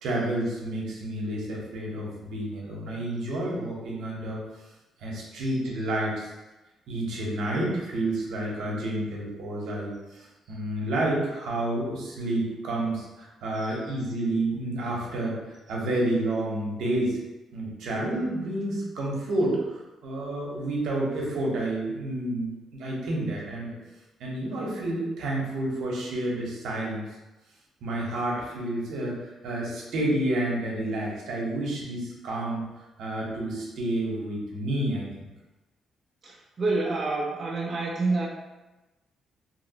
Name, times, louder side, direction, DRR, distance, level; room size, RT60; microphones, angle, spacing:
voice 1, 0.0-4.4 5.0-6.3 6.9-17.2 17.5-23.7 24.2-27.0 27.8-32.6 33.0-35.3, right 1 dB, 80° right, -3 dB, 0.8 m, -30 dB
voice 2, 36.2-38.3, right 3 dB, 40° right, -3 dB, 0.4 m, -28 dB
2.8 x 2.8 x 2.8 m, 1.1 s
cardioid pair, 105°, 0 cm